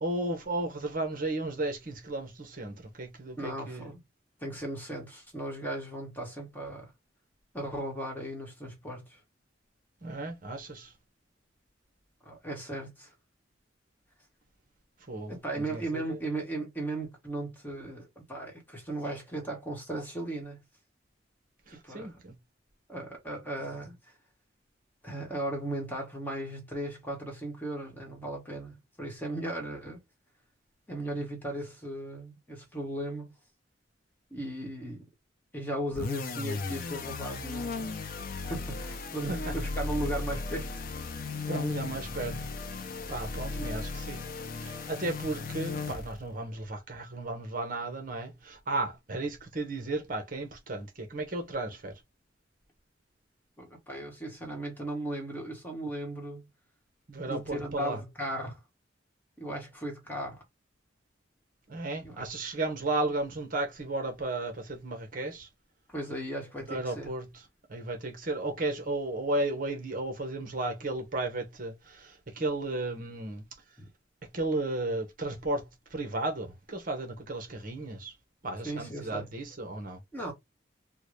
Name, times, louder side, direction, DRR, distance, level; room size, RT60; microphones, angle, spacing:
voice 1, 0.0-3.9 10.0-10.9 15.1-16.2 21.7-22.3 39.2-39.5 41.5-42.4 43.1-44.3 44.6-52.0 57.1-58.0 61.7-65.5 66.7-67.4 67.7-73.4 74.3-78.1 78.4-80.0, right 2 dB, 45° right, 0.9 m, -34 dB
voice 2, 3.4-4.0 4.4-6.9 7.5-9.2 12.2-13.1 15.3-20.6 21.7-22.1 22.9-24.0 25.0-30.0 30.9-33.3 34.3-35.1 35.5-37.9 38.5-40.7 53.6-56.5 57.3-58.6 59.4-60.4 62.0-62.2 65.9-67.1 78.6-79.3 80.1-80.3, right 1 dB, 10° left, 1.2 m, -36 dB
sound 1, 35.9-46.3, left 3 dB, 50° left, 0.5 m, -36 dB
3.7 x 2.2 x 3.1 m
head